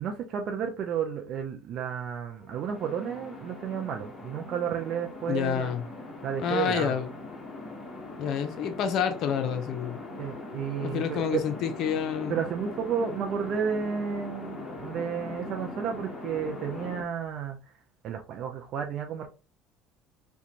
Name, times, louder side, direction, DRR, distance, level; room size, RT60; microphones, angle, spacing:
voice 1, 0.0-5.8 6.2-7.0 10.2-11.4 12.3-17.6 18.0-19.3, right 7 dB, 55° right, 0.4 m, -32 dB
sound 1, 2.3-17.0, left 2 dB, 20° left, 1.1 m, -41 dB
voice 2, 5.3-5.8 6.4-7.1 8.2-10.0 10.8-12.4, left 8 dB, 60° left, 0.5 m, -28 dB
2.5 x 2.2 x 2.8 m
supercardioid pair, 85°, 0 cm